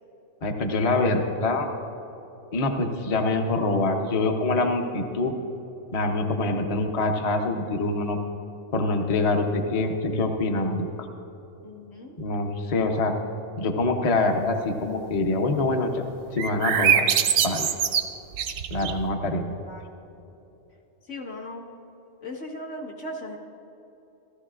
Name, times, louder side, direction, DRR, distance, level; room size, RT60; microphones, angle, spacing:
voice 1, 0.4-1.7 2.5-5.3 5.9-8.2 8.7-11.1 12.2-13.1 13.6-16.0 16.3-17.1 17.4-17.7 18.7-19.6, left 2 dB, 35° left, 3 dB, 0.7 m, -25 dB
voice 2, 11.6-12.2 19.3-19.4 19.7-19.8 21.1-21.7 22.2-23.4, left 1 dB, 75° left, -2 dB, 1.8 m, -37 dB
sound 1, 16.4-19.1, right 8 dB, 80° right, 1.0 m, -23 dB
16.5 x 14.0 x 2.5 m, 2.9 s
omnidirectional pair, 1.3 m